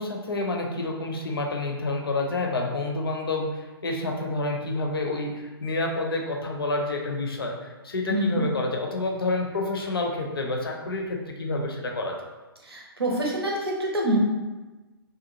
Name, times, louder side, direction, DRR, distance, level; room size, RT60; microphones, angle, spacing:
voice 1, 0.0-12.2, left 2 dB, 65° left, 1 dB, 0.5 m, -28 dB
voice 2, 8.1-8.4 12.6-14.2, right 1 dB, 75° right, -1 dB, 0.7 m, -26 dB
2.6 x 2.2 x 2.9 m, 1.2 s
figure-of-eight pair, 125°, 13 cm